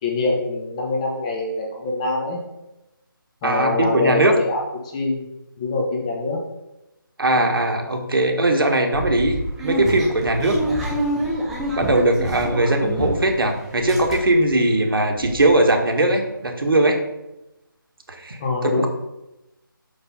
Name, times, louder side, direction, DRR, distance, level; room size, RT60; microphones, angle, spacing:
voice 1, 0.0-2.4 3.4-5.2 5.6-6.4 18.4-18.9, left 3 dB, 15° left, -1 dB, 1.1 m, -24 dB
voice 2, 3.4-4.4 7.2-9.4 9.6-10.9 11.8-17.0 18.1-18.9, right 1 dB, 75° right, 3 dB, 1.5 m, -20 dB
sound 1, 8.9-13.4 13.7-14.5 14.9-15.0 15.2-15.4, right 1 dB, ahead, 0.4 m, -27 dB
6.0 x 5.3 x 5.4 m, 0.93 s
figure-of-eight pair, 165°, 12 cm